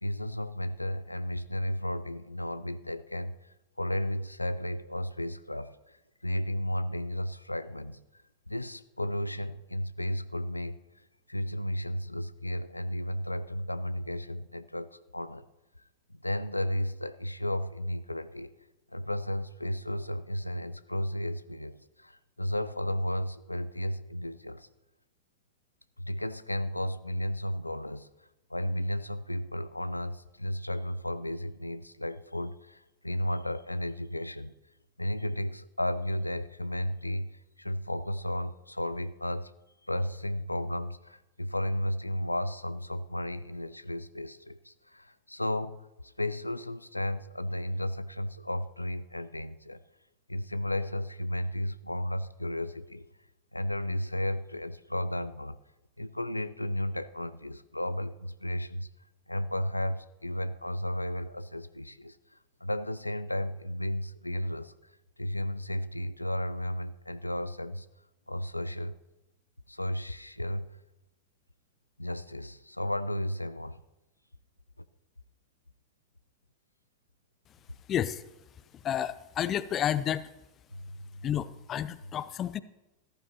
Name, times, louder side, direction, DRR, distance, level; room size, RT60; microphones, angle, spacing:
voice 1, 0.0-8.0 8.5-15.4 16.1-18.5 18.9-24.7 26.0-28.1 28.5-34.5 35.0-39.5 39.8-49.8 50.3-53.1 53.5-55.6 56.0-58.9 59.3-64.9 65.2-67.9 68.3-68.9 69.7-70.8 72.0-73.8 80.7-81.2, left 1 dB, 85° left, 15 dB, 0.4 m, -33 dB
voice 2, 77.9-78.2 78.7-80.2 81.2-82.6, left 10 dB, 30° left, 17 dB, 0.5 m, -30 dB
14.5 x 14.0 x 2.9 m, 0.99 s
figure-of-eight pair, 90°, 0 cm